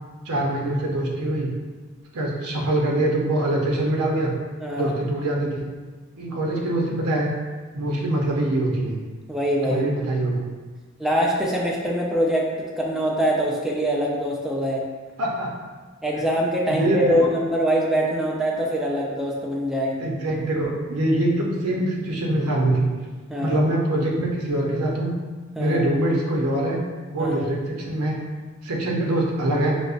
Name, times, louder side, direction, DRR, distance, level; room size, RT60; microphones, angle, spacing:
voice 1, 0.3-1.5 2.1-4.3 4.7-5.6 6.2-7.3 7.7-9.0 9.6-10.5 15.2-15.5 16.1-16.2 16.6-17.3 20.0-22.9 23.4-25.1 25.6-26.8 27.1-28.2 28.6-29.7, right 1 dB, 90° right, -1 dB, 0.7 m, -24 dB
voice 2, 4.6-4.9 9.3-9.8 11.0-14.8 16.0-20.0 23.3-23.6 25.6-25.8 27.2-27.4, equal, ahead, -3 dB, 0.4 m, -23 dB
5.1 x 2.0 x 2.5 m, 1.3 s
head